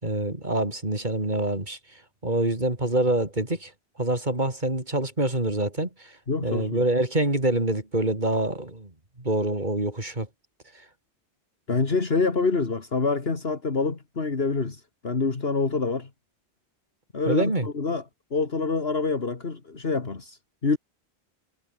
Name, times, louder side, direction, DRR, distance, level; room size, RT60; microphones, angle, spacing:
voice 1, 0.0-3.7 4.0-6.2 6.4-8.9 9.2-10.3 10.7-10.9 17.3-17.7, right 2 dB, 45° right, 4.0 m, -26 dB
voice 2, 6.3-6.8 11.7-16.1 17.1-18.0 18.3-20.8, left 4 dB, 60° left, 2.4 m, -26 dB
omnidirectional pair, 1.1 m